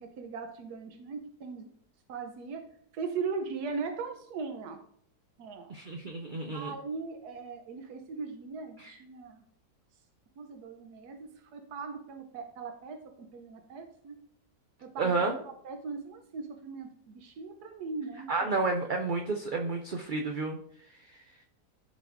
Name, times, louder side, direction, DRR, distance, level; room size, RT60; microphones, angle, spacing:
voice 1, 0.0-1.7 2.1-2.6 2.9-4.8 5.4-5.7 6.5-9.4 10.4-14.2 14.8-15.1 15.4-18.5, right 4 dB, 85° right, 5 dB, 1.4 m, -39 dB
voice 2, 5.7-6.7 8.8-9.0 15.0-15.4 18.3-20.6, right 3 dB, 55° right, 3 dB, 0.5 m, -30 dB
14.0 x 5.1 x 2.6 m, 0.64 s
omnidirectional pair, 1.6 m